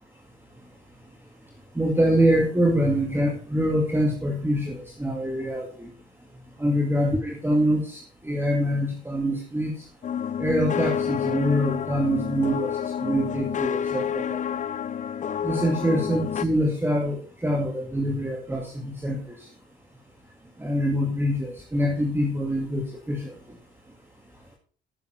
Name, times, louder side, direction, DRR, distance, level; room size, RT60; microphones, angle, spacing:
voice 1, 1.8-5.9 6.6-9.7 10.4-14.4 15.4-19.2 20.6-23.3, equal, 10° right, 0 dB, 2.1 m, -25 dB
sound 1, 10.0-16.5, left 8 dB, 40° left, 0.4 m, -29 dB
10.5 x 7.2 x 4.5 m, 0.41 s
cardioid pair, 90°, 20 cm